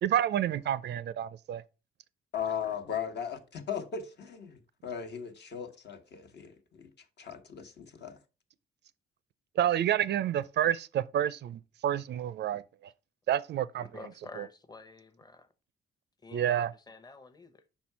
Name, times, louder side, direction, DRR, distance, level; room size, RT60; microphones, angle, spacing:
voice 1, 0.0-1.6 9.5-12.9 13.3-13.9 14.4-14.5 16.3-16.7, right 11 dB, 60° right, 0.4 m, -29 dB
voice 2, 2.3-6.9 7.2-8.2, left 7 dB, 60° left, 1.2 m, -37 dB
voice 3, 13.8-15.5 16.2-17.6, left 3 dB, 20° left, 0.8 m, -49 dB
5.6 x 4.3 x 4.6 m
cardioid pair, 90°, 20 cm